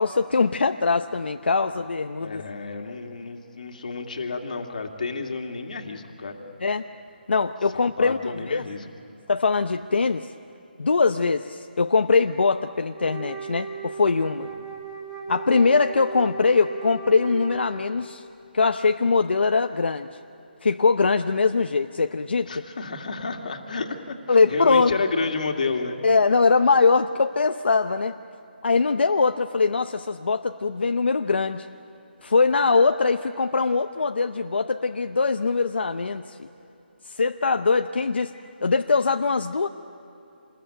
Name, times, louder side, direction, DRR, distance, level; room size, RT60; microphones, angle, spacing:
voice 1, 0.0-2.4 6.6-6.9 7.3-8.6 9.3-10.3 10.8-14.5 15.3-18.2 18.5-20.1 20.6-22.6 24.3-25.0 26.0-28.2 28.6-31.7 32.2-36.5 37.1-38.3 38.6-39.7, left 4 dB, 75° left, 7 dB, 0.8 m, -22 dB
voice 2, 2.2-6.4 7.7-8.9 14.6-14.7 22.5-26.0, left 4 dB, 50° left, 3 dB, 2.3 m, -31 dB
Wind instrument woodwind instrument, 12.9-18.1, right 6 dB, 5° right, 2.9 m, -37 dB
28.0 x 21.0 x 8.9 m, 3.0 s
hypercardioid pair, 175°, 6 cm